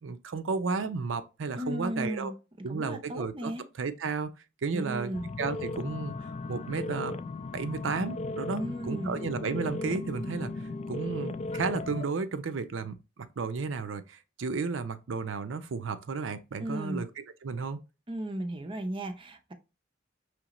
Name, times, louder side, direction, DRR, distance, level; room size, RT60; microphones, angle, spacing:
voice 1, 0.0-2.3 2.6-3.5 3.8-4.3 4.6-5.1 5.4-6.1 6.5-7.2 7.5-10.5 10.9-17.1 17.4-17.8, right 4 dB, 80° right, 0.5 m, -33 dB
voice 2, 1.6-3.7 4.7-5.3 8.5-9.1 16.6-17.0 18.1-19.5, right 1 dB, 25° right, 0.5 m, -35 dB
sound 1, 5.1-12.0, left 2 dB, 35° left, 0.3 m, -36 dB
5.0 x 3.2 x 2.9 m
head